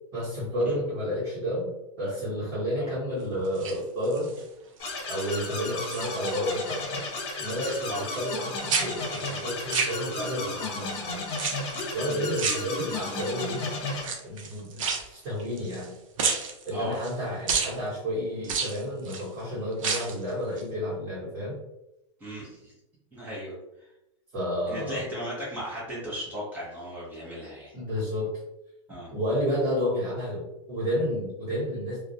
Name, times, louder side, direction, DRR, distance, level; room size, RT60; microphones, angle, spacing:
voice 1, 0.1-1.7 2.0-4.3 5.1-6.8 7.4-11.1 11.9-13.7 14.2-15.9 16.6-21.6 24.3-25.1 27.7-28.3 29.1-32.0, equal, 35° right, -10 dB, 1.0 m, -31 dB
sound 1, 3.4-4.4 4.9-5.3 5.6-6.6 6.9-8.4 8.7-10.5 11.3-11.9 12.4-13.2 13.9-15.9 16.2-17.1 17.5-17.7 18.4-19.3 19.7-20.2 20.6-20.7, right 5 dB, 75° right, 0.5 m, -31 dB
sound 2, 4.8-14.1, left 3 dB, 50° left, 0.7 m, -34 dB
voice 2, 22.2-22.7 23.1-23.9 24.7-27.7 28.9-29.1, equal, 10° right, -7 dB, 0.6 m, -36 dB
2.3 x 2.0 x 2.6 m, 0.88 s
supercardioid pair, 170°, 17 cm